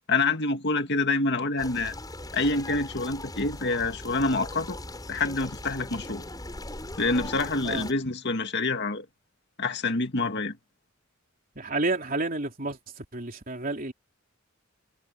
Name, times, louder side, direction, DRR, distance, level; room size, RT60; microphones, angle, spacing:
voice 1, 0.1-1.9 2.3-4.8 5.1-6.2 7.0-9.1 9.6-10.6, left 3 dB, 55° left, 2.1 m, -27 dB
sound 1, 1.6-7.9, left 1 dB, 20° left, 7.1 m, -40 dB
voice 2, 11.6-12.8 13.1-13.9, right 2 dB, 45° right, 3.4 m, -30 dB
head